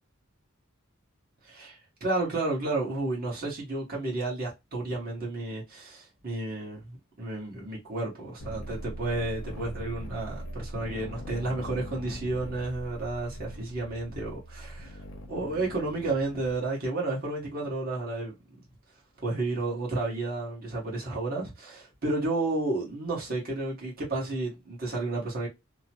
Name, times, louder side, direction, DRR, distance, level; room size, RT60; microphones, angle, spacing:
voice 1, 1.4-15.0 15.3-18.3 19.2-25.5, right 2 dB, 45° right, 1.2 m, -32 dB
sound 1, 8.4-16.6, equal, 65° left, 0.7 m, -41 dB
3.0 x 2.0 x 2.8 m
head